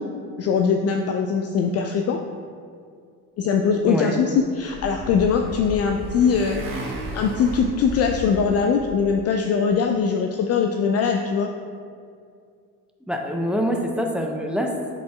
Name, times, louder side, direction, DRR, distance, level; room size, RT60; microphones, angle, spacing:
voice 1, 0.4-2.2 3.4-11.5, left 6 dB, 35° left, 4 dB, 0.4 m, -22 dB
Motorcycle, 4.3-9.2, right 1 dB, 45° right, 1.7 m, -34 dB
voice 2, 13.1-14.9, equal, ahead, 2 dB, 0.7 m, -25 dB
10.5 x 5.1 x 2.3 m, 2.2 s
figure-of-eight pair, 60°, 47 cm